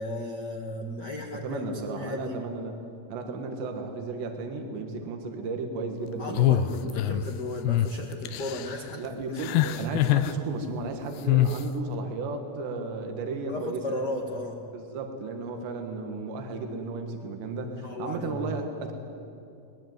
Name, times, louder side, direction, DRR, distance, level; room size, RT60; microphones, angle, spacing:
voice 1, 0.0-1.6 1.9-2.4 6.2-9.9 13.5-14.6 17.8-18.5, left 1 dB, 55° left, 0 dB, 1.1 m, -35 dB
voice 2, 1.4-2.8 3.1-6.6 9.0-13.8 14.7-18.9, right 3 dB, 80° right, 4 dB, 3.9 m, -34 dB
sound 1, 6.3-7.3 7.6-7.9 8.3-8.7 9.4-10.3 11.3-11.6, left 12 dB, 80° left, 2.9 m, -24 dB
21.5 x 21.0 x 9.4 m, 2.7 s
omnidirectional pair, 5.0 m